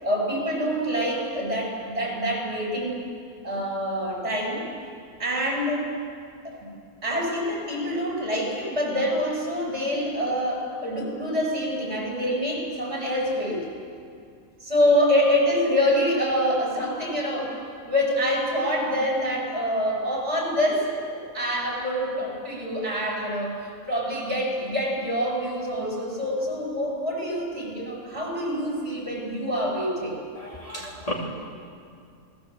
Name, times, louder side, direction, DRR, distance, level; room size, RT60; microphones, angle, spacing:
voice 1, 0.0-3.0 3.4-4.6 5.2-5.9 6.4-6.5 7.0-13.6 14.6-17.5 17.8-23.5 23.9-30.2, equal, 45° right, -2 dB, 8.0 m, -26 dB
voice 2, 30.3-31.1, left 1 dB, 25° left, -4 dB, 3.0 m, -33 dB
28.5 x 20.5 x 8.0 m, 2.3 s
omnidirectional pair, 1.5 m